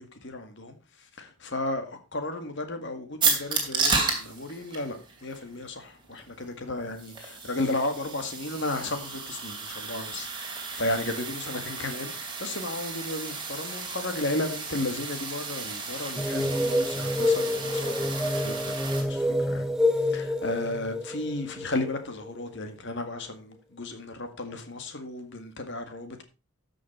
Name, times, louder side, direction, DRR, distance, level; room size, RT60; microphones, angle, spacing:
voice 1, 0.0-19.7 19.9-26.2, left 2 dB, 55° left, 1.9 m, -34 dB
sound 1, 3.2-19.0, right 4 dB, 20° right, 2.6 m, -33 dB
sound 2, 16.2-22.6, left 1 dB, 5° right, 0.4 m, -28 dB
13.0 x 6.4 x 4.4 m
head